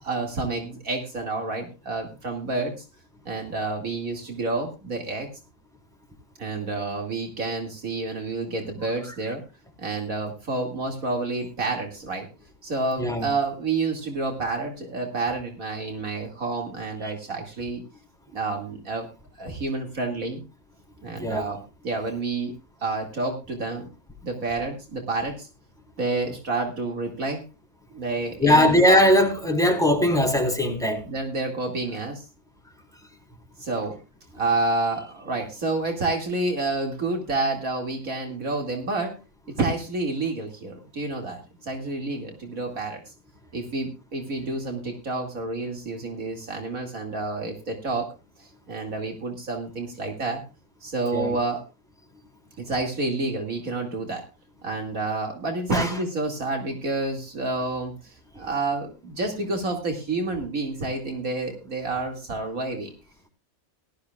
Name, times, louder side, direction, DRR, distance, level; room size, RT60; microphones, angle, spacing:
voice 1, 0.0-2.8 3.2-5.3 6.4-9.4 9.8-12.3 12.6-17.8 18.3-19.1 19.4-20.4 21.0-22.5 22.8-23.9 24.2-25.5 26.0-27.4 27.9-28.8 31.0-32.2 33.6-34.0 34.3-39.2 39.6-43.1 43.5-48.1 48.4-50.4 50.8-51.6 52.6-54.2 54.6-62.9, right 3 dB, 70° right, 2.8 m, -29 dB
voice 2, 21.2-21.5 28.4-31.0 51.1-51.3 55.7-55.9, left 1 dB, ahead, 3.9 m, -20 dB
18.0 x 13.5 x 2.4 m
omnidirectional pair, 1.5 m